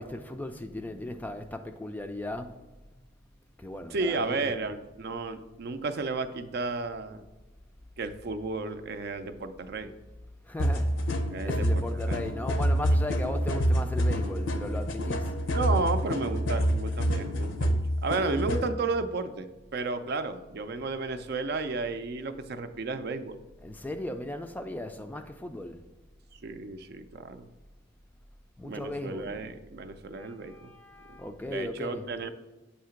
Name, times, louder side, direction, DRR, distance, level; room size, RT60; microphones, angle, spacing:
voice 1, 0.0-2.6 3.6-4.5 10.4-15.3 23.6-25.8 28.6-29.4 30.2-32.1, left 1 dB, 10° left, 0.3 m, -37 dB
voice 2, 3.9-7.2 8.0-9.9 11.3-12.2 15.5-23.4 26.4-27.5 28.6-30.7 31.1-31.2 31.5-32.3, right 3 dB, 55° right, 0.5 m, -33 dB
sound 1, 10.6-18.7, equal, 80° left, 0.7 m, -27 dB
8.3 x 2.8 x 5.7 m
head